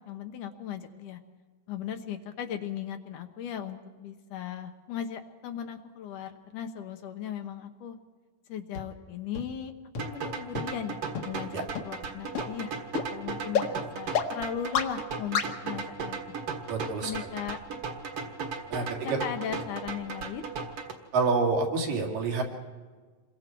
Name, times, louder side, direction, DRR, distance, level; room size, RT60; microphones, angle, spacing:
voice 1, 0.1-1.2 1.7-8.0 8.5-9.7 10.0-11.0 11.2-12.7 13.1-16.2 17.0-17.6 18.9-20.4, left 9 dB, 70° left, 6 dB, 2.4 m, -37 dB
sound 1, 8.7-8.8 9.3-9.4 9.9-10.0 10.5-10.6 11.1-11.2 11.7-11.8 12.3-12.4 12.9-13.0 13.5-13.6 14.1-14.2 14.7-14.8 15.3-15.4, left 7 dB, 55° left, 1.8 m, -27 dB
sound 2, 10.0-20.9, right 5 dB, 50° right, 2.3 m, -37 dB
voice 2, 16.7-17.1 18.7-19.2 21.1-22.4, right 4 dB, 75° right, 1 dB, 4.4 m, -27 dB
28.0 x 23.0 x 4.6 m, 1.4 s
omnidirectional pair, 4.0 m